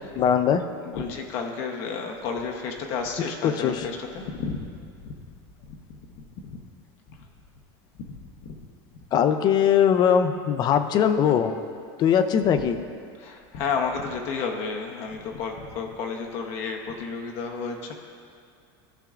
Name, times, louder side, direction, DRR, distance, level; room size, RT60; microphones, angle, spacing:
voice 1, 0.1-0.6 3.4-3.9 9.1-11.6 12.0-12.8, left 8 dB, 35° left, 10 dB, 0.5 m, -21 dB
voice 2, 0.9-5.1 5.7-6.0 6.4-6.6 8.0-8.6 13.2-17.9, left 5 dB, 55° left, 2 dB, 0.9 m, -32 dB
15.0 x 5.9 x 2.5 m, 2.2 s
supercardioid pair, 145°, 13 cm